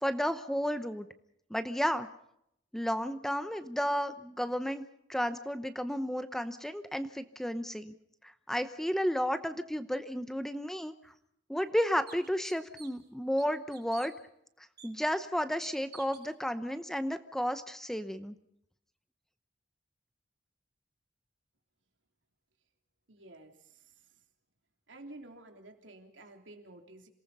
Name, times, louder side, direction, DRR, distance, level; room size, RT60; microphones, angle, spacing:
voice 1, 0.0-1.1 1.5-2.1 2.7-4.8 5.1-7.9 8.5-10.9 11.5-14.1 14.8-18.4, equal, ahead, 11 dB, 0.8 m, -32 dB
sound 1, 11.0-11.1 11.6-11.7 12.1-13.1 13.4-14.1 14.8-14.9 15.6-16.3, right 8 dB, 60° right, 2.8 m, -51 dB
voice 2, 23.1-24.2 24.9-27.1, right 2 dB, 85° right, 4 dB, 3.2 m, -52 dB
27.5 x 19.0 x 5.5 m, 0.75 s
head